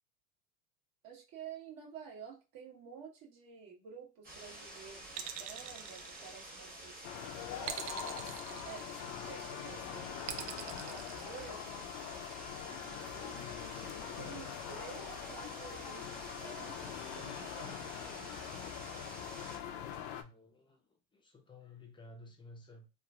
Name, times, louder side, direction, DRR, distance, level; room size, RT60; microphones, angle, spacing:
voice 1, 1.0-11.9 12.8-18.3, right 6 dB, 45° right, -1 dB, 1.2 m, -52 dB
sound 1, 4.2-19.6, right 1 dB, 20° right, 1.2 m, -50 dB
sound 2, 5.1-6.8 7.6-9.3 10.3-11.9, right 10 dB, 70° right, 0.6 m, -43 dB
sound 3, 7.0-20.2, left 9 dB, 50° left, 0.5 m, -43 dB
voice 2, 20.1-22.9, left 2 dB, 10° left, 4 dB, 0.6 m, -55 dB
3.0 x 2.5 x 2.3 m, 0.28 s
hypercardioid pair, 95°, 49 cm